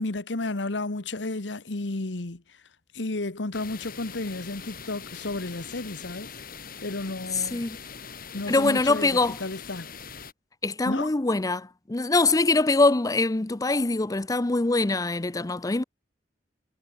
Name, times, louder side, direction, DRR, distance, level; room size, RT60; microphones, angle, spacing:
voice 1, 0.0-2.4 2.9-6.3 6.8-7.6 8.3-9.9 10.8-11.1, left 2 dB, 80° left, 1.4 m, -32 dB
sound 1, 3.5-10.3, left 6 dB, 55° left, 7.9 m, -42 dB
voice 2, 7.3-7.8 8.5-9.4 10.6-15.8, left 3 dB, 20° left, 0.6 m, -23 dB
head